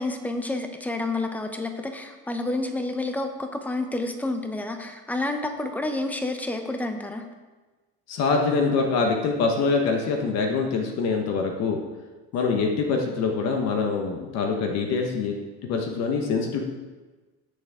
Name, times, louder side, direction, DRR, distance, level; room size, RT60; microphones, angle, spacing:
voice 1, 0.0-7.2, left 2 dB, 5° left, 6 dB, 0.8 m, -29 dB
voice 2, 8.1-11.8 12.3-15.3 15.7-16.6, left 4 dB, 55° left, 2 dB, 1.3 m, -24 dB
16.5 x 6.6 x 3.6 m, 1.2 s
cardioid pair, 155°, 31 cm